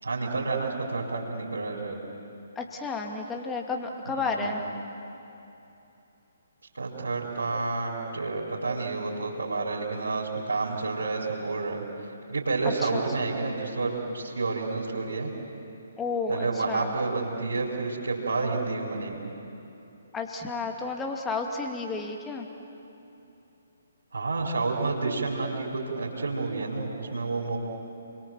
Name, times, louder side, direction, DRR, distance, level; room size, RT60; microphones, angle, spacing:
voice 1, 0.0-2.0 4.2-4.6 6.8-15.3 16.3-19.3 24.1-27.6, right 3 dB, 70° right, -7 dB, 4.9 m, -30 dB
voice 2, 2.6-4.6 12.6-13.0 16.0-16.9 20.1-22.5, left 3 dB, 10° left, 2 dB, 2.4 m, -32 dB
29.5 x 23.0 x 7.8 m, 2.9 s
figure-of-eight pair, 135°, 0 cm